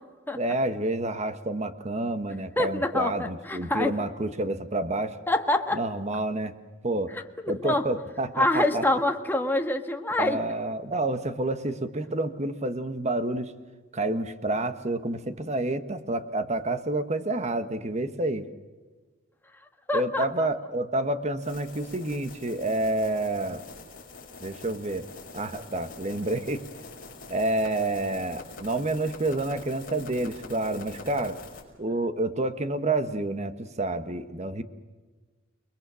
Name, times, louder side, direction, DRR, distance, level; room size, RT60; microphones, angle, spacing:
voice 1, 0.3-5.2 5.7-6.5 6.8-7.1 7.5-8.8 10.2-13.5 13.9-18.5 19.9-23.6 24.4-25.1 25.3-26.6 27.3-31.4 31.8-34.6, right 2 dB, 35° right, 10 dB, 1.4 m, -29 dB
voice 2, 2.6-3.9 5.3-5.8 7.1-7.8 8.3-10.4 19.9-20.5, left 1 dB, 10° left, 5 dB, 1.5 m, -26 dB
sound 1, 21.4-31.6, left 3 dB, 45° left, 5.6 m, -45 dB
30.0 x 21.0 x 6.3 m, 1.3 s
head